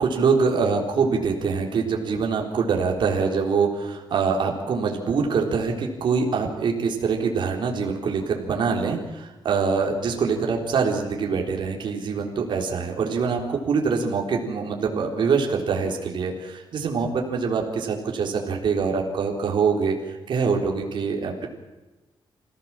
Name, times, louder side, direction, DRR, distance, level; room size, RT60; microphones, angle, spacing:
voice 1, 0.0-21.5, right 5 dB, 60° right, 1 dB, 3.9 m, -24 dB
27.0 x 16.0 x 7.6 m, 1.1 s
wide cardioid pair, 165°, 9 cm